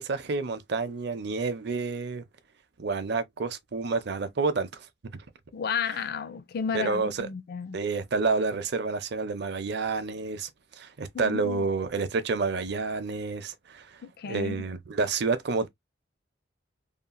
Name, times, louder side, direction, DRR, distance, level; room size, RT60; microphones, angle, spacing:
voice 1, 0.0-2.2 2.8-4.7 5.8-5.9 6.7-7.3 7.7-10.5 10.8-13.9 14.2-15.7, right 4 dB, 60° right, 0.6 m, -29 dB
voice 2, 5.5-7.8 11.1-11.7 14.0-14.6, left 6 dB, 55° left, 0.3 m, -33 dB
2.8 x 2.7 x 2.2 m
head